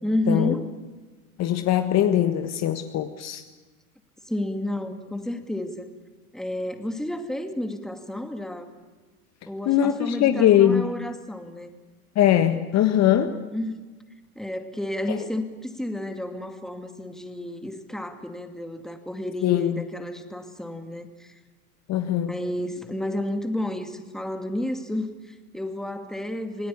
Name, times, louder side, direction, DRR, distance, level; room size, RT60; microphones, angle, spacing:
voice 1, 0.0-0.6 4.3-5.9 6.3-8.7 9.5-11.8 13.3-13.8 14.4-21.4 22.3-26.7, left 1 dB, ahead, 5 dB, 2.4 m, -31 dB
voice 2, 1.4-3.4 9.7-10.9 12.1-13.3 15.1-15.2 19.4-19.8 21.9-22.3, left 11 dB, 35° left, 8 dB, 1.5 m, -21 dB
27.5 x 18.5 x 8.7 m, 1.3 s
hypercardioid pair, 100°, 44 cm